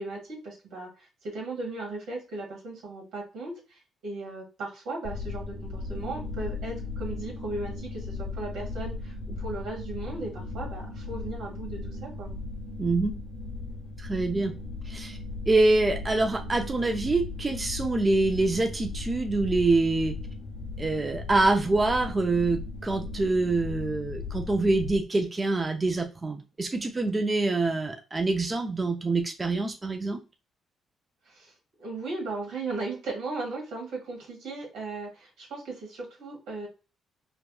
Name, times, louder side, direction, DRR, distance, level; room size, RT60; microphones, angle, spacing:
voice 1, 0.0-12.3 31.2-31.5 31.8-36.7, right 3 dB, 90° right, -1 dB, 1.5 m, -37 dB
sound 1, 5.0-25.0, left 3 dB, 70° left, 0.8 m, -37 dB
voice 2, 12.8-13.2 14.0-14.5 14.9-15.2 15.5-20.2 20.8-30.2, right 2 dB, 25° right, 4 dB, 0.4 m, -25 dB
3.4 x 2.3 x 2.3 m, 0.32 s
cardioid pair, 90°, 0 cm